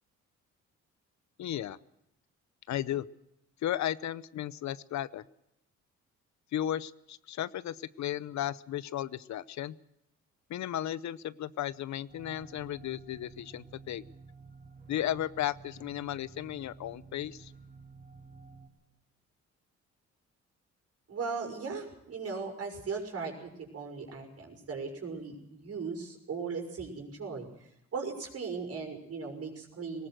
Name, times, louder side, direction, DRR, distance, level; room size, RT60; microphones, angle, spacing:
voice 1, 1.4-1.8 2.7-3.0 3.6-5.2 6.5-9.7 10.5-14.0 14.9-17.5, left 12 dB, 65° left, 18 dB, 0.8 m, -35 dB
sound 1, 12.1-18.7, right 4 dB, 30° right, 4.4 m, -52 dB
voice 2, 21.1-27.5 27.9-30.1, right 4 dB, 55° right, 3 dB, 6.0 m, -38 dB
19.5 x 18.5 x 7.7 m, 0.81 s
cardioid pair, 90°, 30 cm